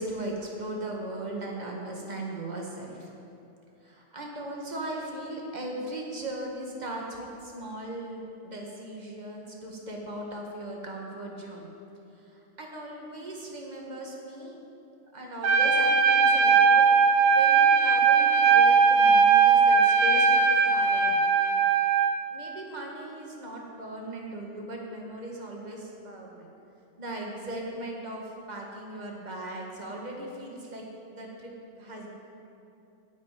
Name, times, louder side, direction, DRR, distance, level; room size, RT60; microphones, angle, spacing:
voice 1, 0.0-3.1 3.8-11.7 12.6-14.6 15.1-16.8 17.3-21.3 22.3-26.5 27.0-30.9 31.1-32.1, right 1 dB, 25° right, -1 dB, 1.4 m, -38 dB
Trumpet, 15.4-22.1, right 5 dB, 75° right, 1.4 m, -20 dB
9.8 x 6.6 x 8.9 m, 2.7 s
omnidirectional pair, 2.1 m